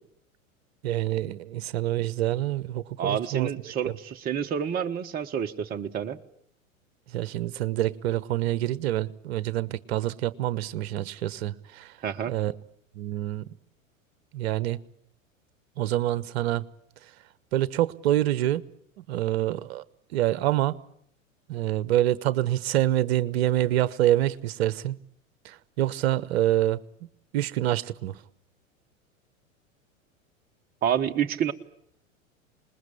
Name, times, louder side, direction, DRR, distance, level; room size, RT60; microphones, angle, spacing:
voice 1, 0.8-3.5 3.9-4.0 7.1-12.0 12.3-12.6 12.9-13.4 14.3-14.8 15.8-16.6 17.5-18.6 19.0-19.8 20.1-20.8 21.5-25.0 25.4-26.8 27.3-28.2, right 13 dB, 50° right, 1.1 m, -26 dB
voice 2, 3.0-6.2 12.0-12.3 30.8-31.5, right 8 dB, 20° right, 1.0 m, -28 dB
27.0 x 20.5 x 8.5 m
figure-of-eight pair, 90°, 41 cm